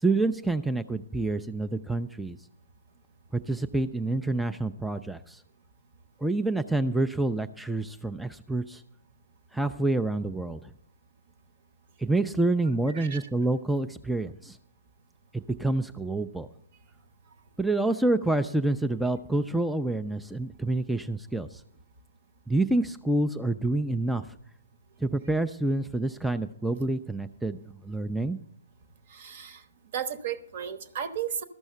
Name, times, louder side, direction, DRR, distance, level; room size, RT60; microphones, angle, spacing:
voice 1, 0.0-2.4 3.5-5.4 6.2-8.8 9.5-10.7 12.0-14.6 15.3-16.5 17.6-21.6 22.5-24.3 25.0-28.4, right 2 dB, ahead, 8 dB, 0.3 m, -27 dB
voice 2, 12.9-13.3 29.1-29.6 29.9-31.4, right 8 dB, 50° right, 11 dB, 0.9 m, -34 dB
13.0 x 6.2 x 6.6 m, 0.69 s
figure-of-eight pair, 125°, 0 cm